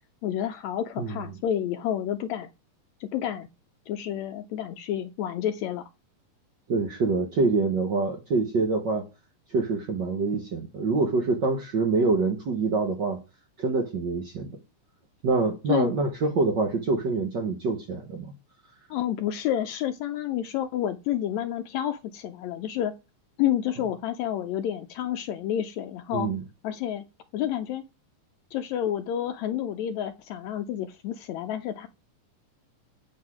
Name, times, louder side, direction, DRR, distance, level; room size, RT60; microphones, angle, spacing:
voice 1, 0.2-2.5 3.0-3.5 3.9-5.8 15.7-15.9 18.9-23.0 23.4-26.3 26.6-27.0 27.3-27.8 28.5-31.9, left 11 dB, 80° left, 1.6 m, -29 dB
voice 2, 6.7-9.0 9.5-13.2 13.6-14.6 15.2-18.3 26.1-26.4, right 3 dB, 75° right, 1.0 m, -25 dB
8.0 x 7.8 x 4.8 m
omnidirectional pair, 3.7 m